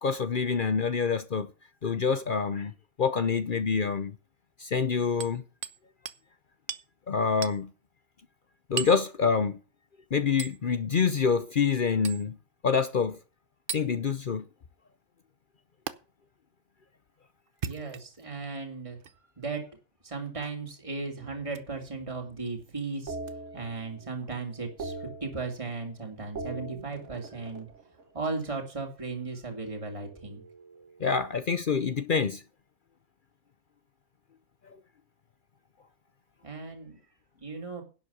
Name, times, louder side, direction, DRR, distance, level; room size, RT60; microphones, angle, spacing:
voice 1, 0.0-1.5 1.8-2.7 3.0-4.1 4.6-5.4 7.1-7.7 8.7-9.6 10.1-12.4 12.6-13.2 13.7-14.4 31.0-32.4, left 5 dB, 50° left, 0.9 m, -26 dB
Hammer, 5.2-5.8 6.1-6.2 6.7-6.9 7.4-7.6 8.8-9.0 10.4-10.6 12.0-12.3 13.7-13.9 15.9-16.0 17.5-18.3 19.0-19.1 20.4-20.6 21.5-21.7 23.2-23.3, right 7 dB, 50° right, 0.9 m, -37 dB
voice 2, 17.6-19.0 19.4-19.7 20.0-23.2 23.5-27.7 28.1-30.4 36.4-37.0 37.4-37.8, right 4 dB, 25° right, 2.5 m, -36 dB
sound 1, 21.2-22.5 23.1-24.2 24.5-25.9 26.2-28.6 29.8-31.5, right 3 dB, 85° right, 2.4 m, -43 dB
11.0 x 7.5 x 6.8 m
omnidirectional pair, 1.2 m